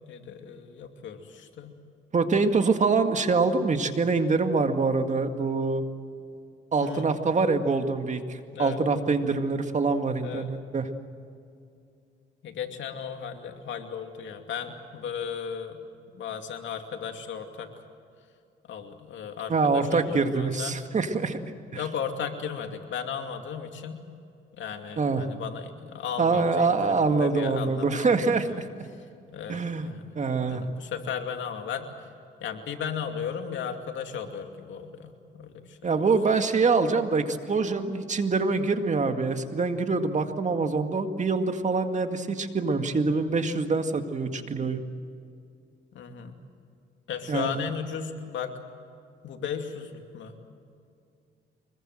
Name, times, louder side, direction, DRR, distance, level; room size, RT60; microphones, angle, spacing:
voice 1, 0.1-1.7 6.8-7.1 8.5-8.8 10.2-10.5 12.4-15.8 16.1-17.7 18.6-20.8 21.7-24.1 24.6-28.6 28.9-29.1 29.3-32.0 32.4-36.0 39.8-40.1 43.1-43.2 45.9-46.4 47.1-48.5 49.2-50.5, left 7 dB, 70° left, 5 dB, 2.7 m, -36 dB
voice 2, 2.1-5.8 6.7-10.9 19.5-21.4 21.7-21.8 25.0-25.2 26.2-28.6 29.5-29.9 30.2-30.7 35.8-44.8 47.3-47.5, right 4 dB, 35° right, 7 dB, 2.0 m, -25 dB
25.0 x 22.0 x 7.8 m, 2.5 s
cardioid pair, 90°, 20 cm